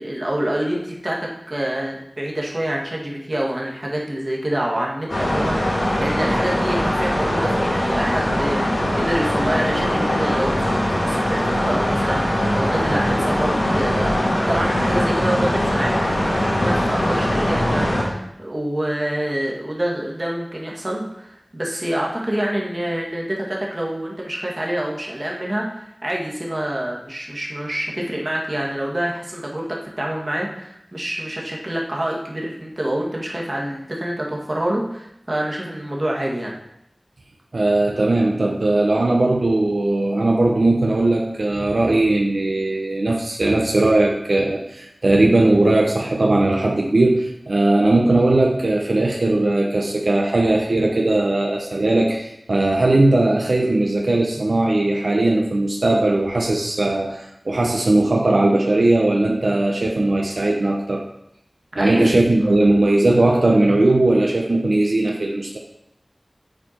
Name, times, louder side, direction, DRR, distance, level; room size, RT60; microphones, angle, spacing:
voice 1, 0.0-36.6 61.8-62.1 62.4-62.5, right 1 dB, 40° right, -2 dB, 1.6 m, -26 dB
sound 1, 5.1-18.0, equal, 75° left, 2.9 m, -21 dB
voice 2, 37.5-61.0 61.7-65.6, right 2 dB, 85° right, 0 dB, 0.7 m, -18 dB
7.6 x 4.5 x 4.3 m, 0.80 s
wide cardioid pair, 60°, 0 cm